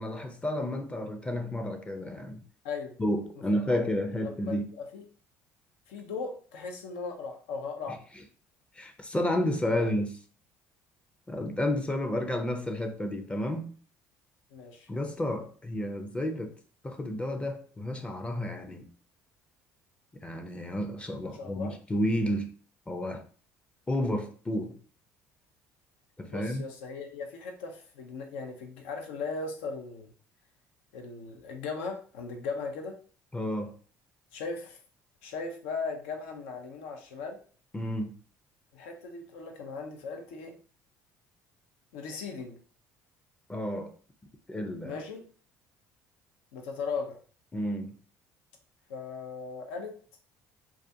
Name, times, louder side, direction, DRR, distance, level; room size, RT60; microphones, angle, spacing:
voice 1, 0.0-2.4 3.0-4.6 8.7-10.1 11.3-13.7 14.9-16.5 16.8-18.9 20.1-22.5 22.9-23.2 23.9-24.8 26.2-26.7 33.3-33.7 37.7-38.2 43.5-43.9 44.5-45.0 47.5-47.9, left 1 dB, 15° left, 0.5 m, -31 dB
voice 2, 2.6-3.0 3.6-3.8 4.2-5.0 5.9-8.0 9.7-9.9 14.5-14.9 21.3-21.8 26.3-30.1 30.9-33.0 34.3-34.8 35.2-37.4 38.7-40.6 41.9-42.6 44.8-45.2 46.5-47.2 48.9-49.9, left 4 dB, 85° left, 0.5 m, -38 dB
2.4 x 2.3 x 2.6 m
supercardioid pair, 75°, 7 cm